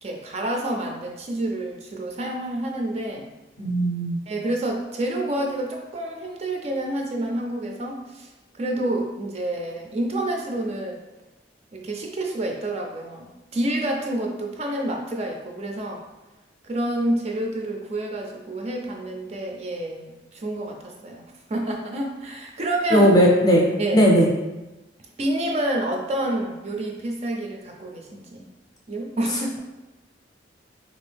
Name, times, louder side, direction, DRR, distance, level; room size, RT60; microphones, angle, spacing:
voice 1, 0.0-3.3 4.3-11.0 11.7-16.0 16.6-21.2 21.5-23.2 23.8-24.1 25.2-28.5 28.9-29.6, right 1 dB, 35° right, 1 dB, 0.4 m, -28 dB
voice 2, 3.6-4.2 22.9-23.7 23.9-24.3, equal, 20° left, -2 dB, 0.6 m, -17 dB
3.4 x 2.6 x 3.3 m, 1.0 s
head